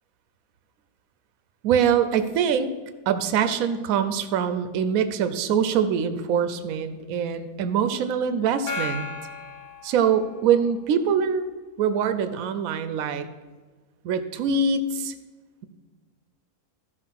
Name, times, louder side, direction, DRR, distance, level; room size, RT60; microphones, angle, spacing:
voice 1, 1.6-2.7 3.1-9.1 9.8-11.5 11.8-13.3 14.0-15.1, right 7 dB, 70° right, 10 dB, 1.0 m, -23 dB
Gong, 8.7-10.7, left 2 dB, 80° left, 2.0 m, -35 dB
12.0 x 4.7 x 5.8 m, 1.4 s
omnidirectional pair, 1.6 m